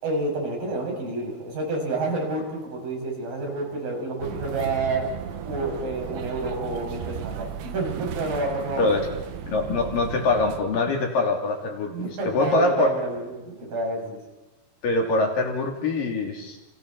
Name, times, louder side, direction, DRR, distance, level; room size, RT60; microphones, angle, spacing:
voice 1, 0.0-5.1 5.4-9.0 11.9-14.2, right 2 dB, 60° right, 0 dB, 7.6 m, -29 dB
sound 1, 4.2-10.6, right 9 dB, 85° right, 3.2 m, -35 dB
voice 2, 9.5-12.9 14.8-16.6, left 3 dB, 60° left, 2 dB, 4.6 m, -24 dB
30.0 x 30.0 x 4.2 m, 1.1 s
omnidirectional pair, 4.5 m